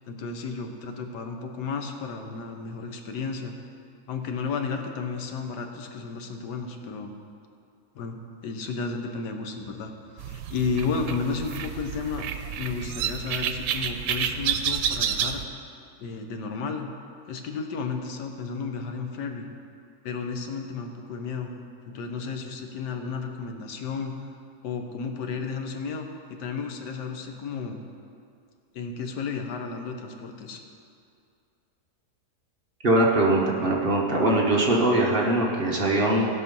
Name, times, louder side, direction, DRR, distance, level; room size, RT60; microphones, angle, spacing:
voice 1, 0.1-3.5 4.1-7.1 7.9-9.9 10.2-12.2 12.6-15.4 16.0-16.9 17.3-19.5 20.0-21.5 21.9-24.1 24.6-27.8 28.7-30.6, left 5 dB, 90° left, 4 dB, 1.6 m, -33 dB
sound 1, 10.2-15.4, right 8 dB, 90° right, 1.2 m, -30 dB
voice 2, 32.8-36.3, right 1 dB, 35° right, -2 dB, 1.3 m, -22 dB
16.0 x 6.2 x 5.4 m, 2.4 s
omnidirectional pair, 1.8 m